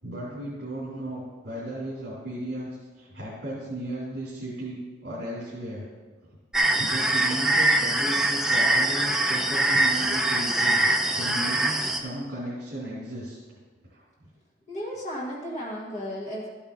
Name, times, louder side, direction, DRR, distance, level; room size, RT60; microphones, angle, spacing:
voice 1, 0.0-5.8 6.2-6.3 6.8-13.4 13.9-14.0, right 1 dB, 60° right, -8 dB, 3.1 m, -35 dB
sound 1, 6.5-12.0, right 2 dB, 5° right, 0.6 m, -23 dB
voice 2, 14.7-16.5, equal, 35° left, -4 dB, 1.5 m, -34 dB
14.0 x 8.6 x 2.8 m, 1.4 s
head